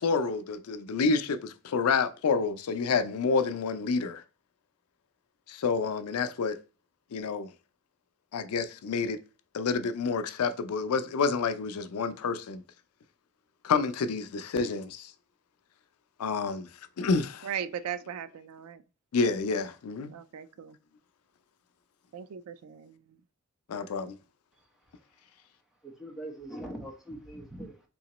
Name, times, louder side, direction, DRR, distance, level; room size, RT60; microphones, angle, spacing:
voice 1, 0.0-4.2 5.5-6.6 7.1-7.5 8.3-9.2 9.5-12.6 13.6-15.1 16.2-16.7 17.0-17.5 19.1-20.1 23.7-24.2, left 4 dB, 80° left, 0.4 m, -28 dB
voice 2, 17.4-18.8 20.1-20.8 22.1-23.0, right 8 dB, 75° right, 0.3 m, -38 dB
voice 3, 24.5-25.1 25.8-27.9, right 1 dB, ahead, 0.8 m, -43 dB
3.8 x 2.9 x 2.9 m
head